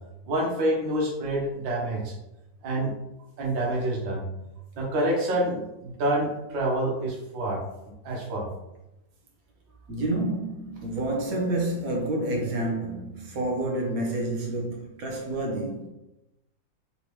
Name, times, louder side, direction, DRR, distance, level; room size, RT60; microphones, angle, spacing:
voice 1, 0.3-2.1 2.6-2.9 3.4-4.3 4.8-7.6 8.0-8.5, right 1 dB, 85° right, 1.8 m, -27 dB
voice 2, 9.9-15.9, right 1 dB, 55° right, 1.1 m, -29 dB
4.1 x 3.4 x 3.0 m
omnidirectional pair, 2.0 m